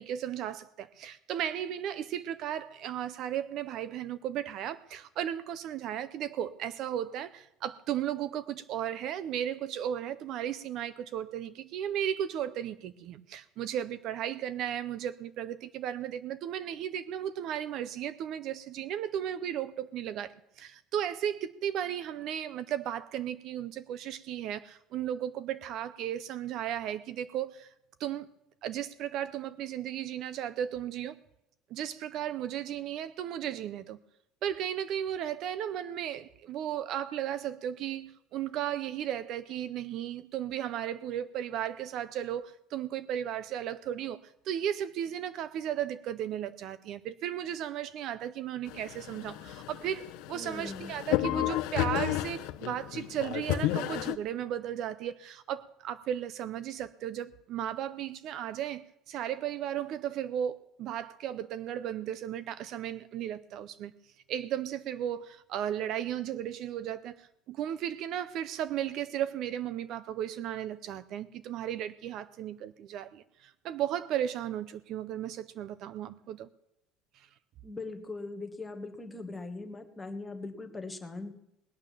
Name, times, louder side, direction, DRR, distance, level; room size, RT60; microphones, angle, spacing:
voice 1, 0.0-27.7 28.0-28.3 28.6-31.2 31.7-34.0 34.4-63.9 64.3-76.5 77.1-77.3, right 10 dB, 45° right, 0.5 m, -35 dB
sound 1, 48.7-54.2, left 16 dB, 65° left, 0.7 m, -32 dB
voice 2, 50.3-50.9 77.6-81.3, left 3 dB, 10° left, 1.3 m, -40 dB
19.5 x 9.1 x 7.1 m
cardioid pair, 180°, 0 cm